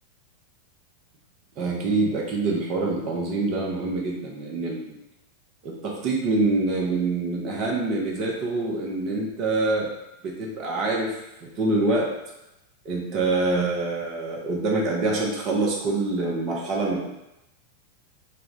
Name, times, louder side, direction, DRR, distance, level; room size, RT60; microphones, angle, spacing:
voice 1, 1.6-5.0 5.6-9.9 10.2-11.2 11.6-12.1 12.8-17.1, right 2 dB, 35° right, -2 dB, 0.7 m, -25 dB
2.3 x 2.1 x 3.7 m, 0.90 s
figure-of-eight pair, 90°, 0 cm